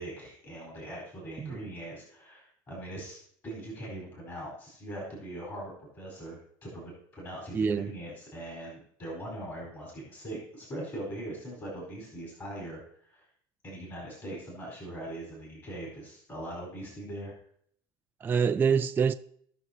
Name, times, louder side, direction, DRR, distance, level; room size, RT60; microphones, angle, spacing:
voice 1, 0.0-13.3 13.6-17.3, right 1 dB, 30° left, 4.4 m, -41 dB
voice 2, 7.5-7.9 18.2-19.1, right 6 dB, 20° right, 0.3 m, -26 dB
18.0 x 6.1 x 2.9 m
supercardioid pair, 120°, 11 cm